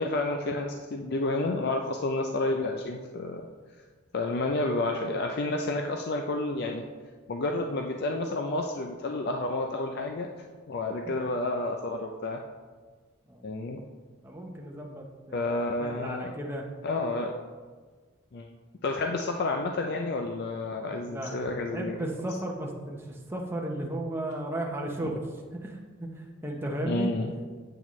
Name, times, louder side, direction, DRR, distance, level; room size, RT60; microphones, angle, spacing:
voice 1, 0.0-3.4 4.1-6.8 7.3-12.4 13.4-13.8 15.3-16.3 16.8-17.3 18.3-18.5 18.8-22.0 26.8-27.3, left 2 dB, 50° left, 3 dB, 0.4 m, -30 dB
voice 2, 14.2-15.5 15.8-16.7 20.9-27.1, right 1 dB, 10° right, -1 dB, 0.7 m, -35 dB
8.7 x 6.1 x 3.1 m, 1.5 s
head